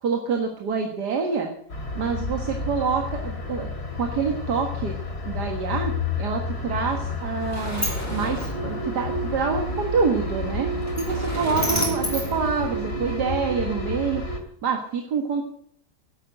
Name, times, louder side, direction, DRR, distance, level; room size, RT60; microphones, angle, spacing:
voice 1, 0.0-1.5 2.0-3.7 4.0-5.0 5.2-10.7 11.0-14.2 14.6-15.4, right 5 dB, 85° right, 3 dB, 2.2 m, -26 dB
sound 1, 1.7-14.4, left 2 dB, 70° left, 3.3 m, -30 dB
Sliding door, 6.9-13.3, left 1 dB, 10° left, 4.6 m, -32 dB
12.5 x 10.5 x 7.7 m, 0.67 s
omnidirectional pair, 1.7 m